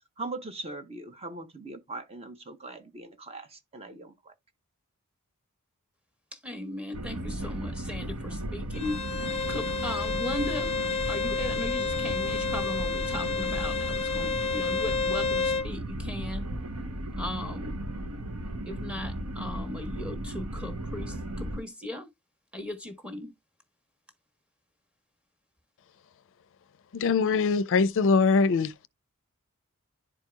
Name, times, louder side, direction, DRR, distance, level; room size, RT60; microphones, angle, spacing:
voice 1, 0.2-4.3, right 2 dB, 25° right, 0.8 m, -40 dB
voice 2, 6.3-10.7 11.1-16.4 17.2-17.7 18.7-22.1 22.5-23.3, left 1 dB, 5° right, 1.1 m, -37 dB
sound 1, 6.9-21.6, right 1 dB, 90° right, 0.9 m, -35 dB
Bowed string instrument, 8.7-15.7, left 4 dB, 30° left, 0.7 m, -30 dB
voice 3, 26.9-28.7, left 4 dB, 60° left, 0.5 m, -22 dB
11.0 x 4.6 x 2.2 m
head